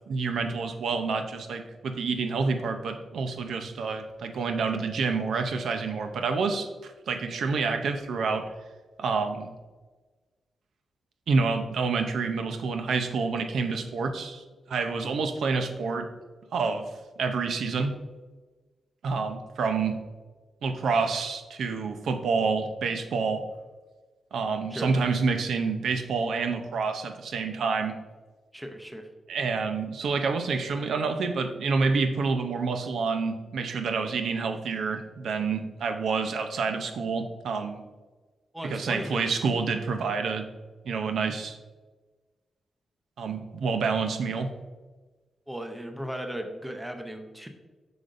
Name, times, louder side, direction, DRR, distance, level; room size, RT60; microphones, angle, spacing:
voice 1, 0.1-8.4 9.0-9.5 11.3-16.1 16.5-16.9 17.2-18.0 19.0-20.0 20.6-23.4 24.3-27.9 29.3-37.8 38.6-40.5 40.8-41.6 43.2-44.5, right 4 dB, 80° right, 6 dB, 0.6 m, -28 dB
voice 2, 28.5-29.1 38.5-39.4 45.5-47.5, equal, 5° right, 5 dB, 0.7 m, -36 dB
7.8 x 5.1 x 2.6 m, 1.3 s
wide cardioid pair, 110°, 0 cm